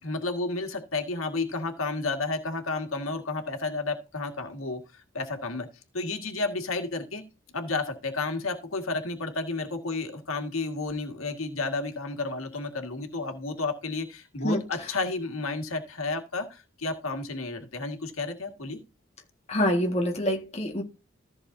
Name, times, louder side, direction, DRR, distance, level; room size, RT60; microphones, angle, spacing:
voice 1, 0.0-5.7 5.9-7.2 7.5-18.8, left 3 dB, 90° left, 2.0 m, -31 dB
voice 2, 19.5-20.8, equal, 30° left, 1.7 m, -26 dB
14.5 x 6.7 x 2.7 m
head